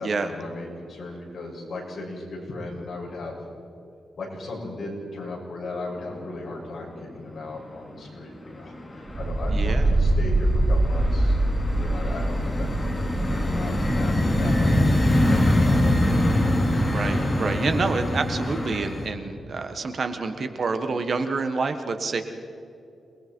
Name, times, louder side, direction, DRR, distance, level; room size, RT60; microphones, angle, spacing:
voice 1, 0.0-3.4 4.1-11.4 11.7-12.7 12.9-16.1, left 2 dB, 50° left, -3 dB, 6.7 m, -37 dB
sound 1, 6.0-6.5 6.8-7.6 7.9-19.1, left 1 dB, 20° left, 2.9 m, -24 dB
sound 2, 9.1-15.1, right 1 dB, 10° right, 1.9 m, -24 dB
voice 2, 9.5-9.9 16.9-22.2, right 4 dB, 50° right, 7 dB, 1.4 m, -28 dB
28.5 x 20.5 x 4.6 m, 2.7 s
wide cardioid pair, 130°, 0 cm